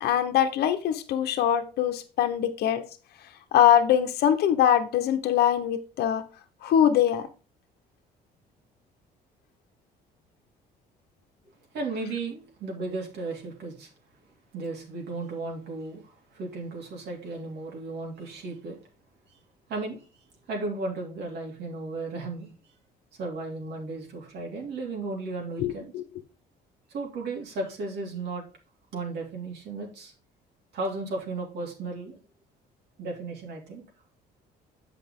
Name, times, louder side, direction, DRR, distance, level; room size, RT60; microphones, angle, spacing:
voice 1, 0.0-2.8 3.5-6.2 6.6-7.3 25.6-26.0, left 9 dB, 70° left, 7 dB, 1.0 m, -23 dB
voice 2, 11.7-13.9 14.5-18.8 19.7-20.0 20.5-22.5 23.2-25.9 26.9-28.4 28.9-30.1 30.7-32.2 33.0-33.8, right 3 dB, 75° right, 0 dB, 2.8 m, -35 dB
8.0 x 5.7 x 3.7 m, 0.35 s
cardioid pair, 110°, 17 cm